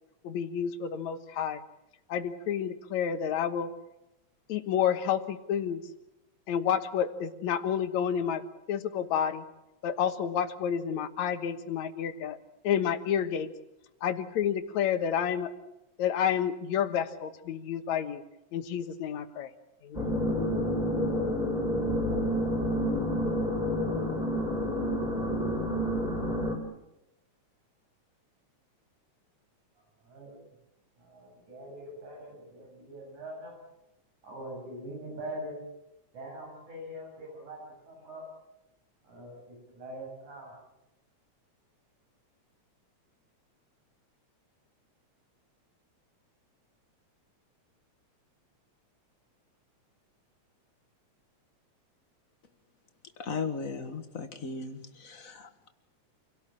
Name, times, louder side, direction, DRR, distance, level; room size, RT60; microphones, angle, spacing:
voice 1, 0.2-1.6 2.1-3.7 4.5-5.8 6.5-8.4 8.7-9.4 9.8-12.4 12.6-13.5 14.0-15.5 16.0-18.2 18.5-19.5 19.8-20.0, left 8 dB, 75° left, 9 dB, 2.6 m, -30 dB
sound 1, 19.9-26.6, equal, 15° left, 4.6 m, -29 dB
voice 2, 30.0-30.4 31.0-33.5 34.2-35.5 36.1-37.6 37.9-38.2 39.1-40.5, right 1 dB, 90° right, 0 dB, 8.5 m, -43 dB
voice 3, 53.2-55.7, left 4 dB, 35° left, 7 dB, 1.5 m, -37 dB
27.5 x 17.5 x 8.6 m, 0.92 s
omnidirectional pair, 3.3 m